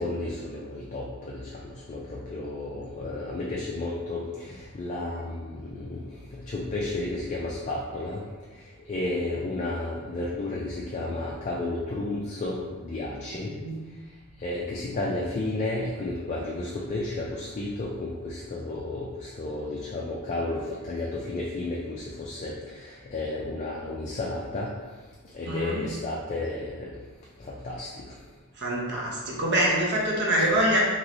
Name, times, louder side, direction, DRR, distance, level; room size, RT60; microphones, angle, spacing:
voice 1, 0.0-6.1 6.3-8.2 8.9-13.5 14.4-24.7 25.3-26.9 27.4-28.2, left 2 dB, 30° left, -4 dB, 0.3 m, -32 dB
voice 2, 13.4-13.8 25.5-25.8 28.6-30.9, right 1 dB, 50° right, -3 dB, 0.7 m, -25 dB
3.0 x 3.0 x 2.6 m, 1.3 s
head